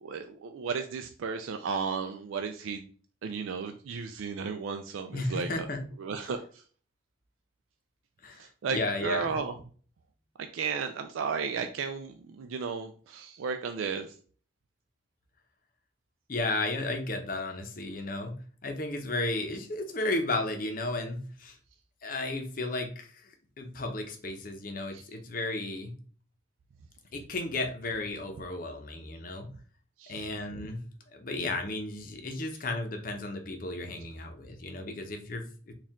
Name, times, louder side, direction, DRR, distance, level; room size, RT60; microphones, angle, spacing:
voice 1, 0.0-2.9 3.2-5.7 6.0-6.6 8.4-9.5 10.4-14.1 24.9-25.0 30.0-30.2, right 5 dB, 90° right, 6 dB, 0.4 m, -34 dB
voice 2, 5.1-5.8 6.2-6.3 8.2-9.4 16.3-18.3 18.6-21.6 22.0-25.9 27.1-29.5 30.1-30.8 31.1-35.7, left 2 dB, 45° left, 5 dB, 0.7 m, -34 dB
4.4 x 2.4 x 3.6 m, 0.42 s
head